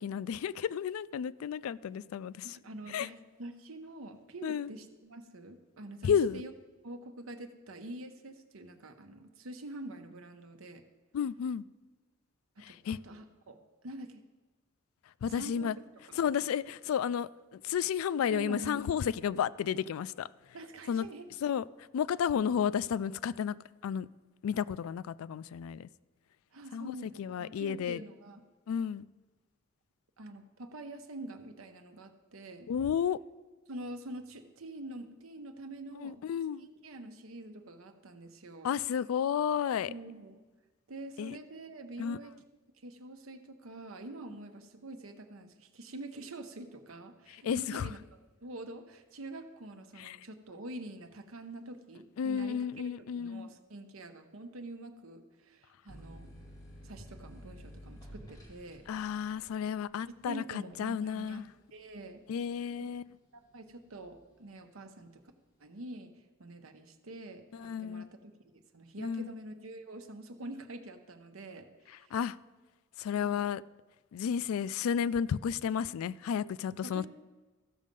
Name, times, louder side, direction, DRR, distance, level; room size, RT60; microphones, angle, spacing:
voice 1, 0.0-2.5 2.9-3.1 4.4-4.7 6.0-6.4 11.1-11.6 12.6-13.0 15.2-15.8 16.2-20.3 20.9-21.1 21.4-21.6 21.9-23.6 23.8-24.1 24.4-25.9 26.7-28.0 28.7-29.0 32.7-33.2 36.0-36.7 38.6-39.9 41.2-41.4 42.0-42.2 47.4-47.9 50.0-50.2 52.2-53.5 58.9-61.4 62.3-63.1 67.6-68.1 69.0-69.3 72.1-72.4 73.0-73.6 74.1-77.1, left 8 dB, 90° left, 0.3 m, -32 dB
voice 2, 2.4-6.5 6.8-10.8 12.6-14.2 15.3-15.7 16.0-16.2 18.2-18.8 20.5-21.3 26.5-28.4 30.2-32.7 33.7-36.2 36.6-38.7 39.9-40.4 40.9-42.3 42.8-56.3 56.8-58.8 60.1-62.2 62.7-62.8 63.3-65.2 65.6-72.2 73.1-73.4 76.8-77.1, right 1 dB, 75° right, 1.0 m, -46 dB
sound 1, 55.9-63.2 63.6-64.3, equal, 20° left, 2.4 m, -52 dB
14.5 x 6.4 x 5.3 m
head